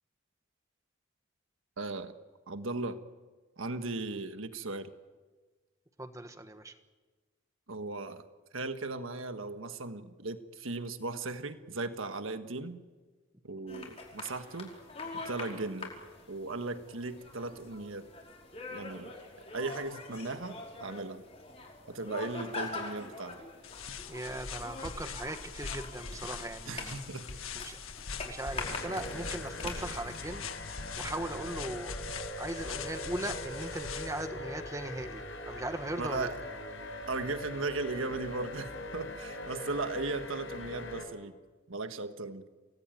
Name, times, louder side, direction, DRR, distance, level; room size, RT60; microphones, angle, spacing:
voice 1, 1.8-2.1 2.5-3.0 3.6-4.9 7.7-8.2 8.5-12.8 13.4-14.7 15.1-15.9 16.3-18.1 18.7-19.1 19.5-21.2 21.9-23.4 26.6-27.2 27.6-27.7 36.0-36.3 37.1-41.4 41.7-42.5, right 3 dB, 80° right, 9 dB, 1.4 m, -37 dB
voice 2, 6.0-6.7 24.1-27.0 27.5-27.8 28.2-32.0 32.4-36.3, right 1 dB, 15° right, 8 dB, 1.4 m, -39 dB
sound 1, 13.7-30.3, left 3 dB, 30° left, 5.0 m, -44 dB
sound 2, 23.6-34.3, left 5 dB, 90° left, 1.6 m, -42 dB
sound 3, 28.5-41.0, left 1 dB, 65° left, 5.3 m, -42 dB
28.0 x 19.5 x 9.2 m, 1.3 s
head